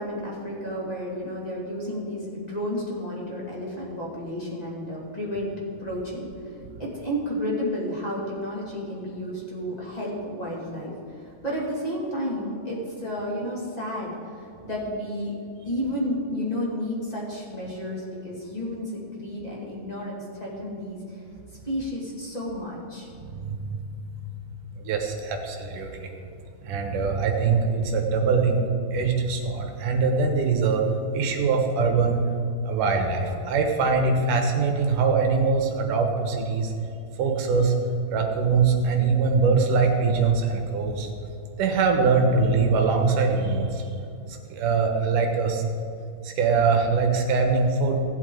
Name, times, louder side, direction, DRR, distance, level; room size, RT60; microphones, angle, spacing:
voice 1, 0.0-5.5 5.8-6.5 6.8-15.3 15.6-21.2 21.6-23.1, equal, 15° left, -5 dB, 1.5 m, -31 dB
voice 2, 23.1-23.8 24.7-26.1 26.6-30.8 31.1-32.2 32.7-36.7 37.2-37.7 38.1-41.1 41.6-43.9 44.5-45.6 46.2-48.0, right 4 dB, 70° right, 3 dB, 2.5 m, -23 dB
16.5 x 8.1 x 3.9 m, 2.6 s
omnidirectional pair, 4.3 m